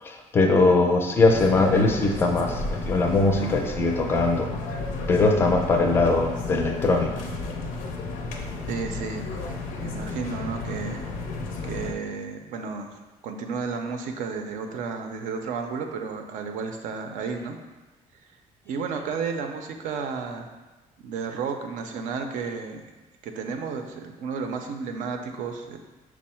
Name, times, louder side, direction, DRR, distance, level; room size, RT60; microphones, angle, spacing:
voice 1, 0.0-4.5 5.1-7.1, left 3 dB, 15° left, 2 dB, 0.4 m, -21 dB
sound 1, 1.3-11.9, left 3 dB, 85° left, 0.6 m, -32 dB
voice 2, 8.7-9.2 9.8-11.0 11.6-12.9 13.2-17.6 18.7-20.5 21.0-22.8 23.2-25.8, right 5 dB, 75° right, 5 dB, 0.5 m, -32 dB
6.1 x 2.0 x 4.3 m, 1.2 s
cardioid pair, 170°, 13 cm